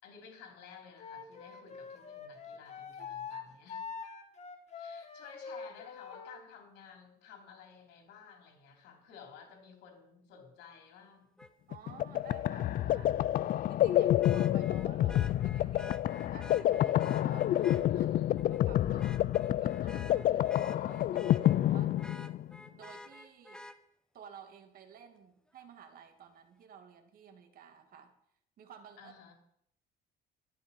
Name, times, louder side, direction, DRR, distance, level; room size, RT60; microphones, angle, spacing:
voice 1, 0.0-3.9 4.7-11.4 17.9-18.4 29.0-29.3, left 6 dB, 85° left, 3 dB, 3.7 m, -54 dB
Wind instrument woodwind instrument, 1.0-6.4, left 5 dB, 40° left, 1.9 m, -44 dB
Vehicle horn car horn honking, 11.4-11.5 14.2-17.8 18.4-18.6 19.0-21.6 22.0-23.8 25.6-25.7, left 1 dB, 5° left, 1.0 m, -50 dB
sound 1, 11.7-22.6, left 13 dB, 55° left, 0.5 m, -28 dB
voice 2, 11.7-13.2 13.7-18.1 18.5-22.0 22.7-23.7 24.1-28.1 28.6-29.1, right 7 dB, 60° right, 5 dB, 2.5 m, -54 dB
13.5 x 12.0 x 5.6 m, 0.69 s
cardioid pair, 110°, 17 cm